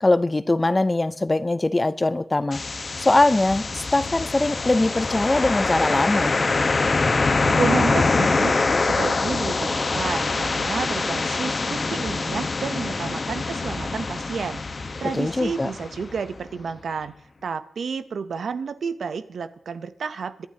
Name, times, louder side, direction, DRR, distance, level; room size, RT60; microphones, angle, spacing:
voice 1, 0.0-2.6 3.0-6.4 15.1-15.7, left 2 dB, 25° left, 0.5 m, -21 dB
sound 1, 2.5-16.4, left 3 dB, 45° left, 1.0 m, -24 dB
voice 2, 7.5-8.5 8.8-14.6 15.0-17.1 17.4-20.5, right 5 dB, 80° right, 0.7 m, -30 dB
23.5 x 11.5 x 2.8 m
wide cardioid pair, 105°, 0 cm